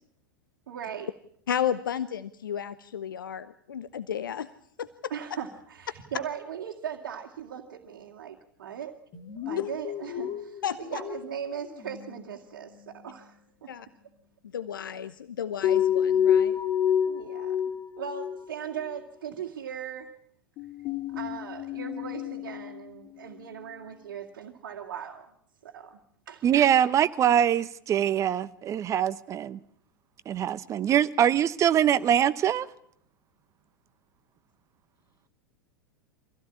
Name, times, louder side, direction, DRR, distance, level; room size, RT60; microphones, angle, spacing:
voice 1, 0.7-1.1 5.1-8.9 9.5-13.7 17.1-17.6 18.0-20.1 21.1-25.3 25.6-26.0 26.3-26.4, right 8 dB, 60° right, 2.3 m, -39 dB
voice 2, 1.5-4.5 4.8-5.1 9.6-9.7 10.6-11.0 13.7-13.9 14.5-16.6, left 9 dB, 70° left, 0.8 m, -33 dB
sound 1, 9.1-11.4 11.7-12.3 15.6-18.5 18.8-19.0 20.6-23.3, left 9 dB, 40° left, 2.6 m, -29 dB
voice 3, 26.4-29.6 30.3-32.7, right 10 dB, 25° right, 1.0 m, -23 dB
25.0 x 16.0 x 8.6 m
figure-of-eight pair, 90°, 12 cm